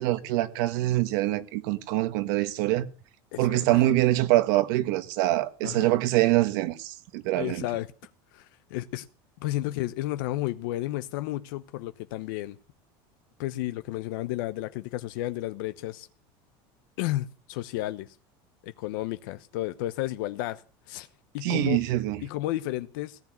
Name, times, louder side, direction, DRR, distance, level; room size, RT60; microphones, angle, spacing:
voice 1, 0.0-2.9 3.4-7.6 21.4-22.2, right 16 dB, 65° right, 1.5 m, -24 dB
voice 2, 3.3-3.8 5.6-6.0 7.3-7.9 8.3-9.1 9.4-12.6 13.4-16.1 17.0-18.2 18.6-20.6 20.9-21.1 21.3-21.8 22.2-23.2, left 16 dB, 70° left, 0.9 m, -32 dB
17.5 x 7.3 x 9.2 m
cardioid pair, 175°, 11 cm